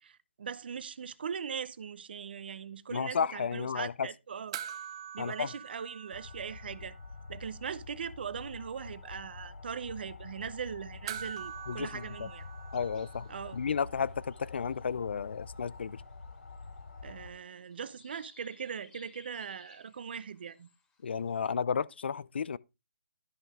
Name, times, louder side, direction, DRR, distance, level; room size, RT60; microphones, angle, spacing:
voice 1, 0.0-4.6 5.1-7.0 7.3-12.4 13.3-13.6 17.0-20.7, right 7 dB, 55° right, 0.8 m, -40 dB
voice 2, 2.9-4.1 5.2-5.5 11.7-12.3 12.7-16.0 21.0-22.6, left 6 dB, 65° left, 0.5 m, -33 dB
sound 1, 4.5-7.2 7.4-7.5 11.1-13.7 15.8-15.9, right 9 dB, 25° right, 0.5 m, -44 dB
sound 2, 6.1-17.3, left 4 dB, 80° left, 1.3 m, -47 dB
sound 3, 11.7-21.5, left 4 dB, 10° left, 1.9 m, -64 dB
12.5 x 5.4 x 3.5 m
hypercardioid pair, 155°, 6 cm